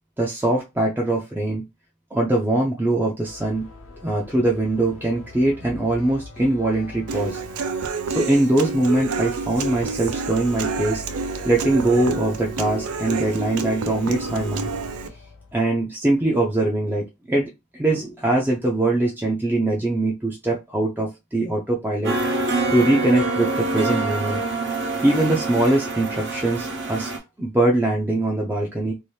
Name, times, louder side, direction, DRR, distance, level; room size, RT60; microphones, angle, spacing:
voice 1, 0.2-1.6 2.1-3.7 4.0-7.4 8.1-11.0 11.4-14.7 15.5-22.1 22.7-24.4 25.0-27.1 27.4-28.9, right 2 dB, 10° right, -2 dB, 0.5 m, -22 dB
sound 1, 3.2-15.6, left 1 dB, 65° left, 0.8 m, -41 dB
Human voice / Acoustic guitar, 7.1-15.1, right 4 dB, 90° right, 0.5 m, -29 dB
sound 2, 22.0-27.2, right 3 dB, 55° right, 0.9 m, -25 dB
2.7 x 2.6 x 3.2 m, 0.23 s
head